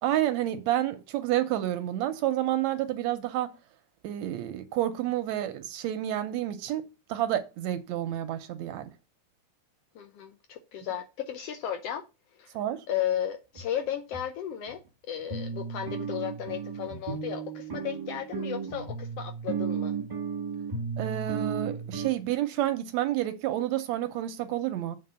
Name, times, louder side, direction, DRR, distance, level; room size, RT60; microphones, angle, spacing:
voice 1, 0.0-3.5 4.0-8.9 12.5-12.8 21.0-25.0, right 13 dB, 75° right, 1.7 m, -29 dB
voice 2, 9.9-12.0 12.4-12.5 12.9-14.8 15.1-19.9, left 10 dB, 80° left, 1.3 m, -34 dB
sound 1, 13.5-13.6 14.1-14.2 14.7-14.8 15.3-22.1, right 6 dB, 25° right, 1.0 m, -34 dB
7.6 x 3.9 x 6.7 m
omnidirectional pair, 3.7 m